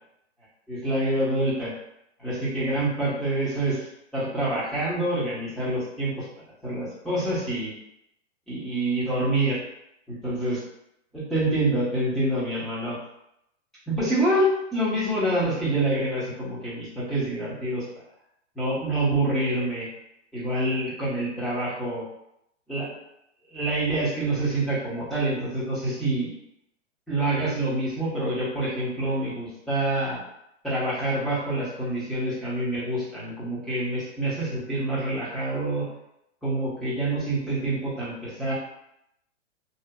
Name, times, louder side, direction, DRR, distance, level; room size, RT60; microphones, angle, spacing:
voice 1, 0.7-1.7 2.2-3.9 4.1-6.2 6.6-7.7 8.5-9.6 10.1-10.6 11.1-13.0 13.9-17.8 18.5-19.9 20.3-22.0 22.7-22.9 23.5-26.3 27.1-30.2 30.6-35.9 36.4-38.5, right 1 dB, ahead, -11 dB, 1.1 m, -26 dB
2.7 x 2.4 x 2.3 m, 0.79 s
hypercardioid pair, 130°, 37 cm